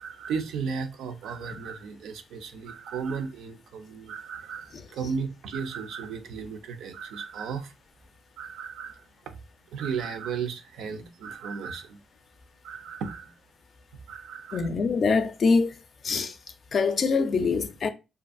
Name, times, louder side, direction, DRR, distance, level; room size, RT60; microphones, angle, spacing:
voice 1, 0.0-7.7 8.4-9.1 9.7-12.0 12.6-13.3 14.1-14.7, right 6 dB, 80° right, 0.4 m, -35 dB
voice 2, 14.5-15.8 16.0-16.4 16.7-17.9, left 4 dB, 50° left, 0.4 m, -24 dB
2.5 x 2.3 x 2.5 m
cardioid pair, 90°, 0 cm